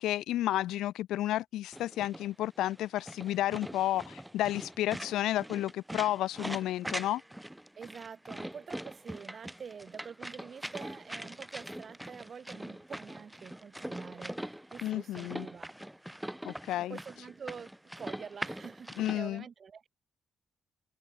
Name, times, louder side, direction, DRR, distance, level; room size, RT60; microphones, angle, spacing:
voice 1, 0.0-7.2 14.8-15.5 16.4-17.0 19.0-19.4, left 14 dB, 85° left, 0.7 m, -31 dB
sound 1, 1.7-19.2, right 1 dB, 5° right, 7.6 m, -42 dB
voice 2, 7.8-15.7 16.9-19.9, right 6 dB, 45° right, 6.9 m, -46 dB
cardioid pair, 90°, 0 cm